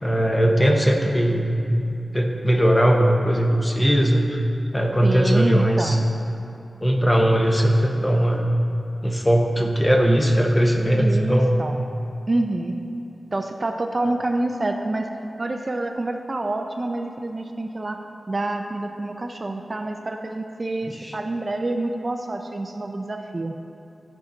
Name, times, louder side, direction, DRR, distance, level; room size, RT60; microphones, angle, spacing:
voice 1, 0.0-4.4 4.7-6.0 6.8-8.5 9.0-11.6 21.0-21.1, equal, 15° left, 1 dB, 1.0 m, -19 dB
voice 2, 0.6-0.9 5.0-6.1 11.0-11.8 12.3-12.8 13.3-15.1 15.4-18.0 18.3-23.6, right 2 dB, 40° right, 5 dB, 0.5 m, -27 dB
14.0 x 5.7 x 3.9 m, 2.7 s
wide cardioid pair, 85°, 0 cm